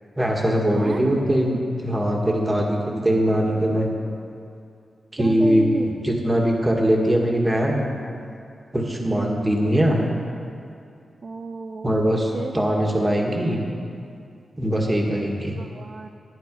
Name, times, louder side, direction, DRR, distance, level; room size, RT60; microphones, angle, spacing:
voice 1, 0.2-3.9 5.1-7.9 8.7-10.0 11.8-13.6 14.6-15.5, equal, 15° right, 0 dB, 1.9 m, -21 dB
voice 2, 0.7-1.2 5.2-5.9 9.0-9.4 11.2-12.1 12.3-12.8 15.6-16.1, right 3 dB, 50° right, 5 dB, 0.5 m, -32 dB
13.0 x 10.0 x 5.4 m, 2.5 s
wide cardioid pair, 100°, 0 cm